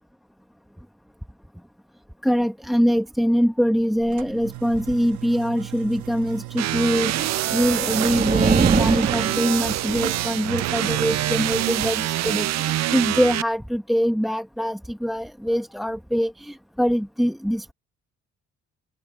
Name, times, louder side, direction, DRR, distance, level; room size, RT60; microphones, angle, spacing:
voice 1, 2.2-17.7, equal, ahead, 1.2 m, -23 dB
sound 1, 4.0-11.9, right 15 dB, 85° right, 1.2 m, -36 dB
sound 2, 6.6-13.4, right 14 dB, 60° right, 0.5 m, -25 dB
sound 3, 7.2-10.1, right 5 dB, 30° right, 1.1 m, -23 dB
open air
cardioid pair, 90°, 30 cm